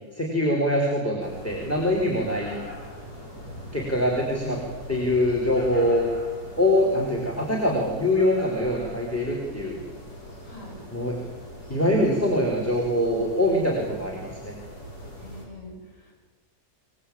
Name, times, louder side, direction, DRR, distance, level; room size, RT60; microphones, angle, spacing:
voice 1, 0.1-2.6 3.7-4.6 4.9-6.1 6.6-9.8 10.9-11.2 11.7-14.5, left 1 dB, 10° left, 0 dB, 4.1 m, -24 dB
sound 1, 1.2-15.4, equal, 75° left, 6.6 m, -41 dB
voice 2, 10.4-10.8 15.2-16.2, left 1 dB, 50° left, -2 dB, 8.3 m, -44 dB
26.5 x 18.5 x 8.7 m, 1.3 s
omnidirectional pair, 1.7 m